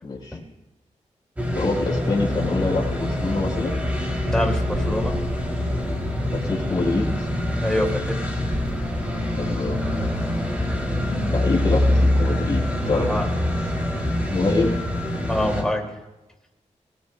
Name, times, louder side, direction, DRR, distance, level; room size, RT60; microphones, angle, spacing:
voice 1, 0.0-0.4 1.5-3.8 6.3-7.3 9.4-9.8 11.3-13.2 14.3-14.7, left 3 dB, 35° left, -2 dB, 4.8 m, -25 dB
sound 1, 1.4-15.6, left 1 dB, 10° right, 3.1 m, -24 dB
voice 2, 4.3-5.1 7.5-8.2 12.9-13.3 15.3-15.9, left 1 dB, 5° left, 0 dB, 2.5 m, -25 dB
29.5 x 18.0 x 2.3 m, 1.0 s
wide cardioid pair, 160°, 12 cm